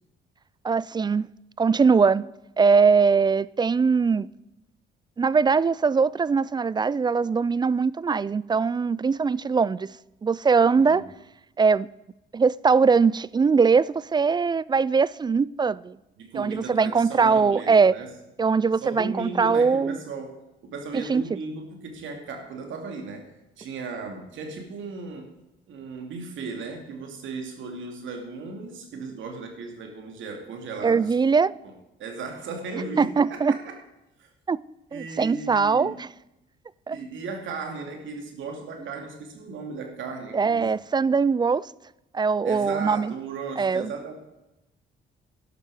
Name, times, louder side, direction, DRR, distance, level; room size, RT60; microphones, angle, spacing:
voice 1, 0.6-1.3 1.6-2.2 2.6-4.3 5.2-9.9 10.2-11.0 11.6-11.9 12.3-16.0 16.3-17.9 18.4-20.0 20.9-21.2 30.8-31.5 33.0-33.5 34.5-34.6 34.9-36.1 36.9-37.0 40.3-41.7 42.1-43.1 43.6-43.9, right 5 dB, 20° right, 0.3 m, -21 dB
voice 2, 16.2-18.1 18.8-23.3 23.6-25.4 25.7-31.1 31.6-31.7 32.0-33.8 34.2-34.3 34.9-36.0 36.9-40.8 42.4-44.1, right 4 dB, 75° right, 2.6 m, -36 dB
12.0 x 11.5 x 4.9 m
cardioid pair, 90°, 20 cm